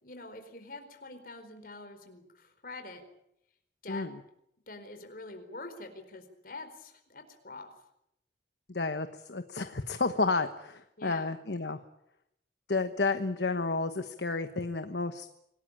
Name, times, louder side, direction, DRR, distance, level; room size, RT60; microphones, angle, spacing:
voice 1, 0.0-3.0 3.8-4.1 4.7-7.7 11.0-11.3, left 3 dB, 50° left, 7 dB, 4.5 m, -45 dB
voice 2, 3.9-4.2 8.7-11.8 12.7-15.3, left 3 dB, 65° left, 9 dB, 1.2 m, -31 dB
26.5 x 18.5 x 8.9 m, 0.81 s
head